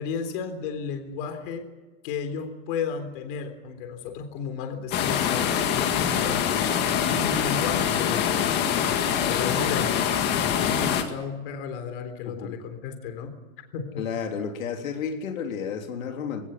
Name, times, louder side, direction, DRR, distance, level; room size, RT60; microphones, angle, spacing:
voice 1, 0.0-1.7 2.0-6.4 6.7-8.5 9.3-10.0 10.5-13.3 13.7-14.0, left 6 dB, 45° left, 7 dB, 3.7 m, -33 dB
sound 1, 4.9-11.0, left 8 dB, 25° left, 2.0 m, -24 dB
voice 2, 12.2-12.6 14.0-16.5, left 6 dB, 90° left, 4 dB, 3.5 m, -32 dB
21.0 x 18.5 x 9.5 m, 1.2 s
supercardioid pair, 170°, 39 cm